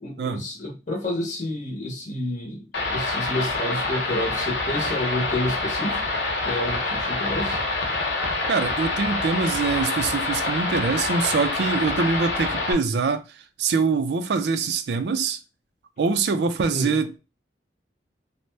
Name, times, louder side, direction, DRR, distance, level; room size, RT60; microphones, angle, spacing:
voice 1, 0.0-6.0 6.4-7.6 16.7-16.9, left 1 dB, 45° left, 0.7 m, -29 dB
sound 1, 2.7-12.7, left 2 dB, 75° left, 0.8 m, -26 dB
voice 2, 8.5-13.2 13.6-15.4 16.0-17.2, right 4 dB, 70° right, 0.4 m, -24 dB
2.7 x 2.1 x 3.2 m
head